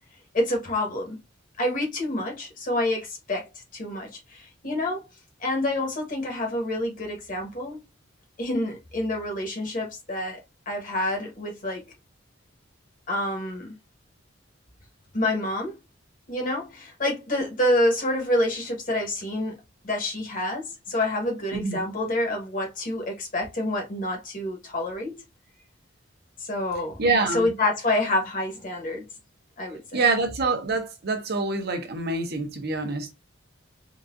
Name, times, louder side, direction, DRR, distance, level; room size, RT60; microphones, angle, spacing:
voice 1, 0.3-1.2 1.6-5.0 5.4-7.8 8.4-10.4 10.7-11.9 13.1-13.7 15.1-15.7 16.3-19.6 19.8-25.1 26.4-27.0 27.3-29.1 29.6-30.0, left 1 dB, 45° left, 1.2 m, -27 dB
voice 2, 27.0-27.5 29.9-33.1, right 3 dB, 55° right, 0.8 m, -25 dB
3.8 x 2.4 x 2.5 m
head